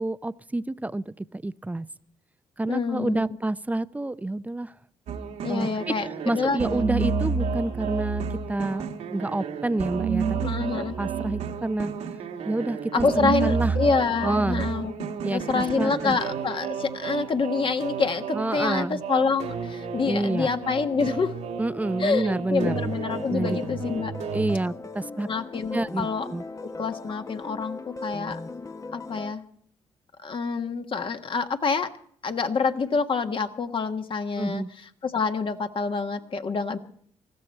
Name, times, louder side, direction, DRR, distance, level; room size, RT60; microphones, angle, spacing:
voice 1, 0.0-1.9 2.6-4.7 5.5-6.0 6.3-11.9 12.4-13.7 14.2-14.7 15.2-16.2 18.3-19.0 20.1-20.5 21.6-22.7 23.3-23.6 24.3-25.3 25.7-26.4 34.4-34.7, right 2 dB, 15° right, 15 dB, 0.6 m, -28 dB
voice 2, 2.7-3.2 5.4-6.6 10.4-11.0 12.9-14.9 15.2-21.3 22.0-24.1 25.3-26.3 26.6-28.4 28.9-29.4 30.2-31.9 32.2-34.6 35.0-36.8, left 4 dB, 45° left, 7 dB, 1.5 m, -27 dB
sound 1, 5.1-24.6, right 6 dB, 85° right, 1.6 m, -31 dB
sound 2, 22.6-29.3, left 3 dB, 30° left, 0.9 m, -38 dB
19.5 x 15.0 x 4.4 m, 0.63 s
supercardioid pair, 65°, 12 cm